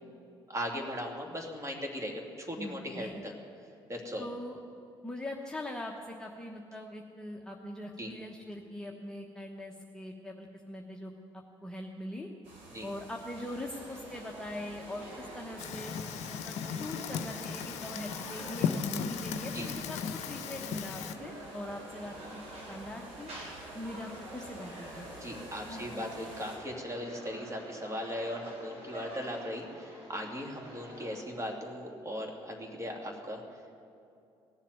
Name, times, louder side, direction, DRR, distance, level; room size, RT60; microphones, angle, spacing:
voice 1, 0.5-3.3 3.9-4.2 8.0-8.1 12.7-12.9 19.5-19.7 25.2-33.4, equal, 25° right, 1 dB, 2.6 m, -38 dB
voice 2, 2.6-3.3 4.2-4.6 5.0-11.1 11.6-12.3 12.8-16.0 16.4-22.4 22.7-23.3 23.7-25.1 25.7-26.0, left 1 dB, 5° left, -1 dB, 1.2 m, -42 dB
sound 1, 12.4-26.6, right 2 dB, 70° right, 3.4 m, -52 dB
sound 2, 13.3-31.2, right 1 dB, 55° right, 4.0 m, -47 dB
Fire, 15.6-21.1, left 7 dB, 60° left, 0.7 m, -36 dB
17.0 x 7.3 x 9.7 m, 2.6 s
hypercardioid pair, 50°, 13 cm